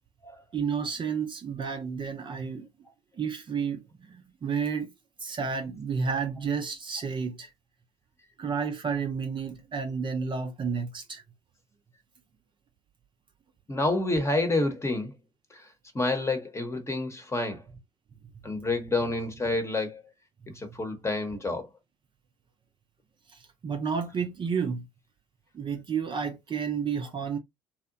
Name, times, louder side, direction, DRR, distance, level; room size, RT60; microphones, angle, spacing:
voice 1, 0.5-2.7 3.2-4.9 5.2-7.5 8.4-11.2 23.3-24.8 25.5-27.4, right 6 dB, 35° right, 0.6 m, -31 dB
voice 2, 13.7-15.1 15.5-15.7 15.9-17.6 18.4-20.0 20.5-21.7, left 2 dB, 20° left, 1.0 m, -28 dB
2.7 x 2.1 x 2.6 m
hypercardioid pair, 60°, 14 cm